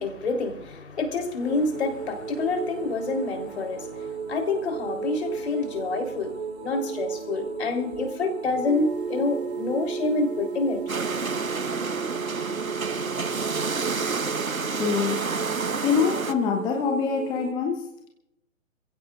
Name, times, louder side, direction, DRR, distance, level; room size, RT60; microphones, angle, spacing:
voice 1, 0.0-10.8, left 3 dB, 55° left, 4.0 m, -28 dB
sound 1, 1.4-17.5, right 6 dB, 55° right, 3.9 m, -36 dB
sound 2, 8.6-14.3, right 5 dB, 40° right, 2.0 m, -34 dB
sound 3, 10.9-16.3, right 4 dB, 85° right, 1.1 m, -29 dB
voice 2, 14.7-15.4 15.8-18.1, left 6 dB, 10° left, 0.9 m, -25 dB
27.5 x 16.0 x 2.5 m
figure-of-eight pair, 130°, 40 cm